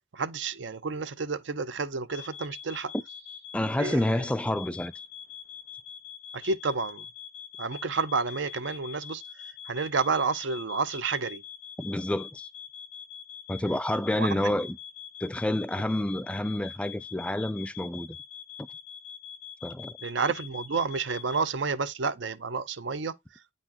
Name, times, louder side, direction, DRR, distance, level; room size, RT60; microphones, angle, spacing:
voice 1, 0.1-2.9 3.8-4.2 6.3-7.1 7.6-9.2 9.7-11.4 14.2-14.4 20.0-23.1, right 4 dB, 65° right, 0.6 m, -30 dB
sound 1, 2.1-21.4, left 8 dB, 85° left, 1.0 m, -44 dB
voice 2, 3.5-4.9 11.8-12.5 13.5-14.8 15.2-18.2 18.6-18.7 19.6-20.0, left 1 dB, 5° left, 0.3 m, -29 dB
8.6 x 4.3 x 2.8 m
head